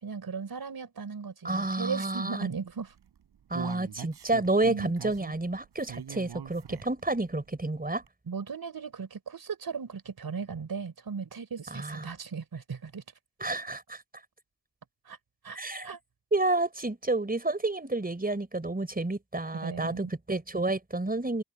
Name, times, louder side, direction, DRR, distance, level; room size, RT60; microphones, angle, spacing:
voice 1, 0.0-2.9 4.6-4.9 8.3-13.0 15.0-15.2 15.4-15.6 15.8-16.0 19.6-20.1, right 5 dB, 65° right, 5.0 m, -37 dB
voice 2, 1.4-2.5 3.5-8.0 11.7-12.1 13.4-14.0 15.5-15.9 16.3-21.4, right 2 dB, 20° right, 5.1 m, -30 dB
Human voice, 2.9-7.1 7.5-7.6 8.0-8.1, right 8 dB, 85° right, 5.8 m, -42 dB
cardioid pair, 45°, 39 cm